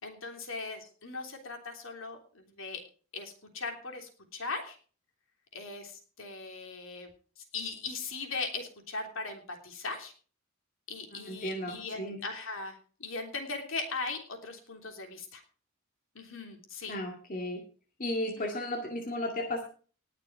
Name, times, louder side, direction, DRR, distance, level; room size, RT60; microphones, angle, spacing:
voice 1, 0.0-2.8 3.1-4.8 5.5-7.1 7.5-10.1 10.9-15.4 16.1-16.9, left 4 dB, 65° left, 4 dB, 3.3 m, -39 dB
voice 2, 11.1-12.2 16.9-17.6 18.0-19.6, left 1 dB, 40° left, 0 dB, 2.2 m, -34 dB
20.0 x 6.7 x 4.8 m, 0.39 s
head